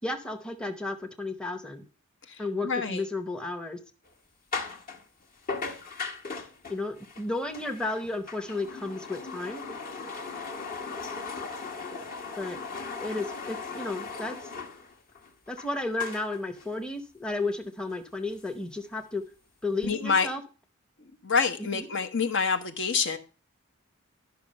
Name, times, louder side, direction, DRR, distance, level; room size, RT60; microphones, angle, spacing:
voice 1, 0.0-1.8 2.4-3.8 6.7-9.6 12.3-12.6 13.0-14.5 15.5-19.2 19.6-20.4 21.6-21.9, left 2 dB, 5° left, 0.8 m, -33 dB
voice 2, 2.6-3.0 19.8-20.3 21.2-23.2, left 5 dB, 55° left, 1.1 m, -26 dB
sound 1, 4.0-4.1 4.5-5.0 5.5-15.7 16.0-16.6 17.3-17.4 17.9-18.0 18.3-19.0, left 4 dB, 40° left, 1.5 m, -38 dB
12.0 x 5.8 x 5.4 m
head